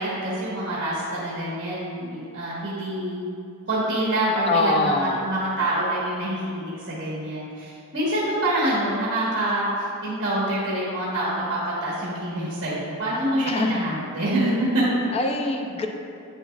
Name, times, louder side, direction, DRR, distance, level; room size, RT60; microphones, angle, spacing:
voice 1, 0.0-3.2 3.7-15.0, right 1 dB, 55° right, -7 dB, 1.4 m, -26 dB
voice 2, 4.5-5.2 13.5-13.7 15.1-15.9, left 2 dB, 30° left, 3 dB, 0.5 m, -23 dB
8.4 x 7.0 x 2.4 m, 2.6 s
head